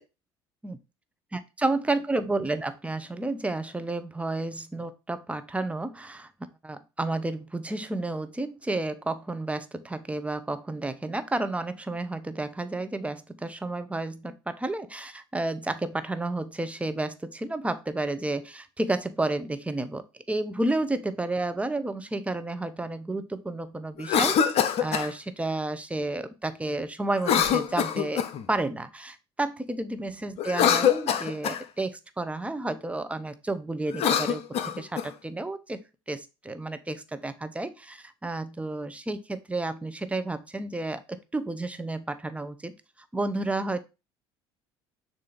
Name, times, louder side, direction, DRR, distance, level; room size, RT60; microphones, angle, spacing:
voice 1, 1.3-6.3 6.6-24.4 24.8-28.2 28.5-42.7 43.1-43.8, right 2 dB, 10° right, 10 dB, 0.8 m, -31 dB
Cough, 24.0-25.1 27.2-28.5 30.4-31.6 33.9-35.1, left 8 dB, 50° left, 0.8 m, -24 dB
6.8 x 2.8 x 5.2 m, 0.28 s
hypercardioid pair, 65°, 13 cm